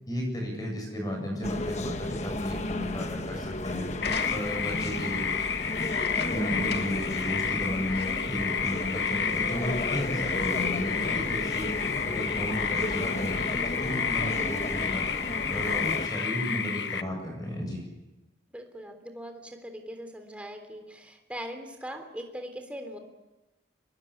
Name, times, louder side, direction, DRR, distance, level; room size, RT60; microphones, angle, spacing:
voice 1, 0.1-3.9 4.3-5.2 6.3-11.7 12.0-15.1 15.5-17.8, equal, 20° left, 1 dB, 7.9 m, -34 dB
sound 1, 1.4-16.1, left 1 dB, 40° left, 1.3 m, -34 dB
sound 2, 4.0-17.0, left 6 dB, 80° left, 1.3 m, -30 dB
sound 3, 4.0-4.8 5.8-7.1 7.5-7.6 7.9-8.4 9.1-9.2, left 4 dB, 65° left, 2.6 m, -41 dB
voice 2, 18.5-23.0, equal, 5° right, 5 dB, 3.4 m, -41 dB
25.0 x 21.5 x 9.9 m, 1.0 s
head